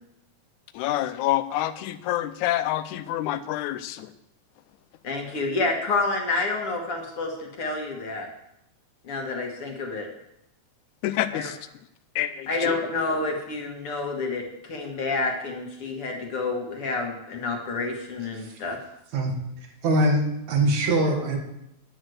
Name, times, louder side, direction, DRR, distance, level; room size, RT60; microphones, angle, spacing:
voice 1, 0.8-4.1 11.0-11.6 12.2-12.8, left 13 dB, 90° left, 12 dB, 2.1 m, -27 dB
voice 2, 5.0-8.3 9.0-10.1 11.3-11.5 12.5-18.8, left 3 dB, 55° left, 2 dB, 2.1 m, -29 dB
voice 3, 19.8-20.2 20.5-21.4, right 1 dB, 70° right, 2 dB, 3.0 m, -21 dB
10.5 x 6.3 x 7.8 m, 0.83 s
omnidirectional pair, 3.3 m